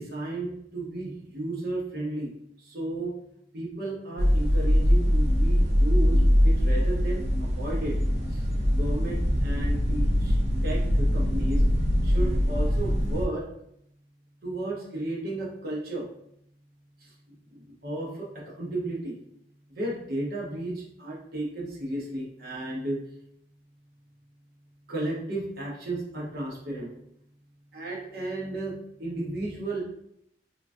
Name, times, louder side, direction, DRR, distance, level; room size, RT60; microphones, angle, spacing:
voice 1, 0.0-2.3 2.6-3.1 3.5-8.0 8.3-8.4 8.7-10.4 10.6-11.6 12.0-13.5 14.4-16.1 17.0-19.2 19.7-23.0 24.9-26.9 27.7-29.8, right 2 dB, 60° right, -3 dB, 0.8 m, -34 dB
sound 1, 4.2-13.3, equal, 40° right, 0.4 m, -23 dB
3.7 x 2.3 x 2.5 m, 0.72 s
head